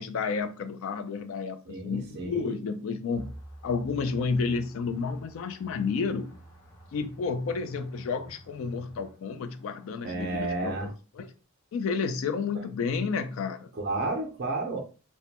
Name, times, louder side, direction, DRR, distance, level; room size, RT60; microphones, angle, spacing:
voice 1, 0.0-3.3 3.6-6.3 6.9-10.8 11.2-11.3 11.7-13.7, left 5 dB, 70° left, 0.3 m, -31 dB
voice 2, 1.7-2.5 10.0-10.9 13.7-14.8, right 2 dB, 45° right, 0.4 m, -31 dB
sound 1, 3.1-9.9, right 1 dB, 10° left, 0.5 m, -50 dB
2.1 x 2.1 x 2.8 m
head